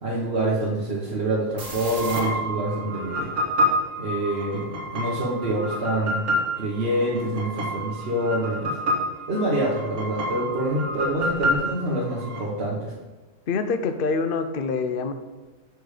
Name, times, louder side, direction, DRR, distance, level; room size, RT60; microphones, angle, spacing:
voice 1, 0.0-3.3 4.0-6.3 6.6-8.8 9.3-12.9, right 1 dB, 50° right, -5 dB, 1.4 m, -26 dB
sound 1, 1.6-12.4, equal, 70° right, 1.9 m, -28 dB
voice 2, 13.5-15.1, left 4 dB, 50° left, 8 dB, 0.8 m, -25 dB
6.9 x 6.3 x 4.9 m, 1.2 s
omnidirectional pair, 1.4 m